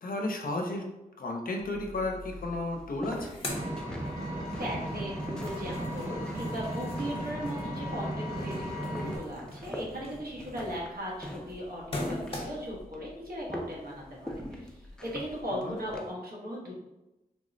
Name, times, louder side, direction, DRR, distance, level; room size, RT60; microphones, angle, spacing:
voice 1, 0.0-0.9 1.2-3.3 15.5-15.8, left 2 dB, 65° left, 2 dB, 0.5 m, -33 dB
sound 1, 1.6-16.1, equal, 5° left, 0.4 m, -44 dB
sound 2, 2.5-2.6 2.8-4.6 4.9-12.8, left 1 dB, 35° left, 0.8 m, -42 dB
Vehicle, 3.5-9.2, equal, 20° right, 0.9 m, -35 dB
voice 2, 4.6-16.8, equal, 70° right, -4 dB, 1.0 m, -38 dB
3.5 x 2.0 x 2.6 m, 0.97 s
wide cardioid pair, 65°, 16 cm